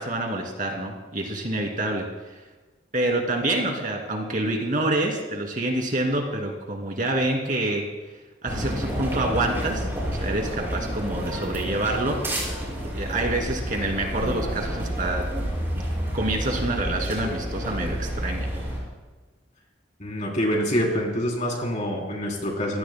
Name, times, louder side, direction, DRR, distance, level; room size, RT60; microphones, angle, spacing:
voice 1, 0.0-2.4 2.9-7.9 8.4-12.4 12.9-15.3 15.7-15.8 16.1-18.5, right 2 dB, 45° right, 1 dB, 2.5 m, -27 dB
sound 1, 8.5-18.8, equal, 15° right, 5.7 m, -30 dB
voice 2, 20.0-22.8, equal, 40° left, 0 dB, 3.5 m, -26 dB
26.0 x 16.0 x 2.2 m, 1.2 s
head